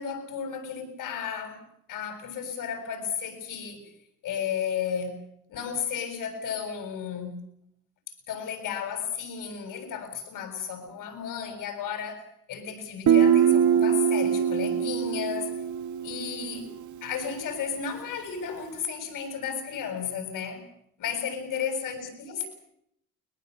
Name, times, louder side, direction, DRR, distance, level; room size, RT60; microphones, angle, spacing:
voice 1, 0.0-1.6 1.9-3.8 4.2-5.2 5.5-7.4 8.3-12.2 12.5-15.5 16.0-16.7 17.0-20.7 21.0-22.5, left 7 dB, 75° left, 6 dB, 7.6 m, -33 dB
Guitar, 13.1-16.7, right 8 dB, 65° right, 1.0 m, -23 dB
23.5 x 20.5 x 8.3 m, 0.73 s
cardioid pair, 90°, 32 cm